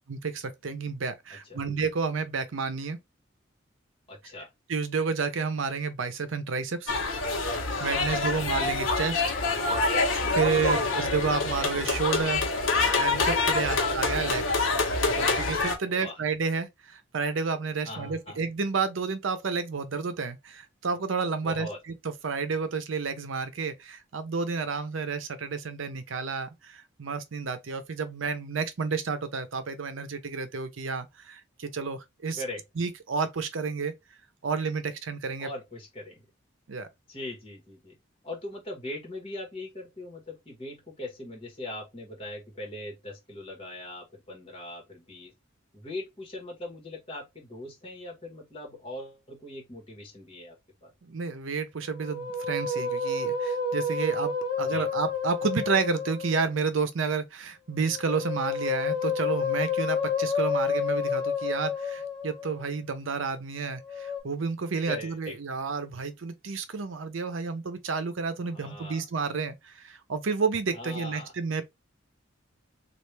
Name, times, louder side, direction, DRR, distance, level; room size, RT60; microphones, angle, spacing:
voice 1, 0.1-3.0 4.7-7.0 7.4-9.4 9.9-14.7 15.2-21.7 22.0-32.4 32.8-33.9 34.4-35.5 36.7-36.9 51.0-71.6, right 5 dB, 75° right, 0.6 m, -31 dB
voice 2, 4.1-4.5 8.2-8.5 10.7-10.8 13.6-13.9 15.8-16.2 17.9-18.4 21.4-21.8 32.4-32.6 35.4-36.2 37.1-37.9 38.2-45.3 45.7-50.9 54.7-54.8 64.8-65.4 68.4-69.1 70.7-71.3, left 1 dB, 30° left, 1.3 m, -40 dB
sound 1, 6.9-15.8, left 3 dB, 80° left, 0.9 m, -26 dB
Musical instrument, 51.9-56.5 57.8-62.6 63.8-64.2, left 4 dB, 25° right, 1.5 m, -30 dB
3.2 x 2.4 x 3.2 m
head